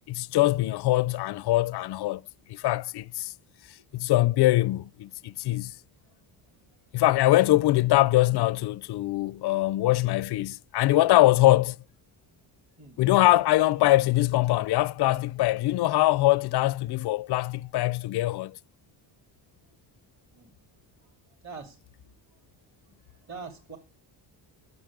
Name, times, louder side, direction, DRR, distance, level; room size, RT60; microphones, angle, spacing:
voice 1, 0.1-2.2 2.5-3.3 3.9-5.7 6.9-11.8 13.0-18.6, left 16 dB, 55° left, 0.5 m, -23 dB
voice 2, 21.4-21.8 23.1-23.8, right 5 dB, 35° right, 2.6 m, -43 dB
9.5 x 7.2 x 8.6 m
cardioid pair, 120°, 46 cm